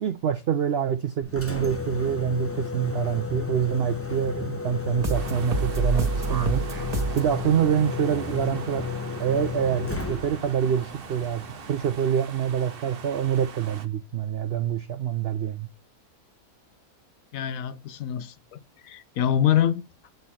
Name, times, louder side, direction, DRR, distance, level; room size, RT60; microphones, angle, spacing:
voice 1, 0.0-6.6 7.1-8.9 9.2-15.7, right 9 dB, 80° right, 0.5 m, -26 dB
Engine, 1.2-12.2, left 4 dB, 10° left, 0.7 m, -33 dB
sound 1, 5.0-7.3, right 3 dB, 25° right, 1.5 m, -27 dB
sound 2, 5.1-13.9, right 6 dB, 45° right, 0.9 m, -42 dB
voice 2, 17.3-18.6 18.8-19.8, left 10 dB, 70° left, 1.0 m, -25 dB
8.1 x 4.1 x 5.5 m
omnidirectional pair, 1.7 m